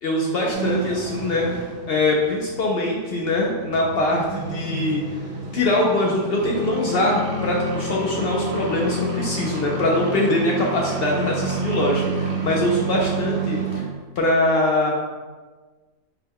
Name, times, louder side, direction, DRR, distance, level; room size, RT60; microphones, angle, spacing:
voice 1, 0.0-5.2 5.5-13.9 14.2-14.9, left 1 dB, 65° left, -2 dB, 0.6 m, -22 dB
sound 1, 0.5-13.8, right 3 dB, 60° right, 0.9 m, -29 dB
4.2 x 2.1 x 3.5 m, 1.3 s
omnidirectional pair, 1.4 m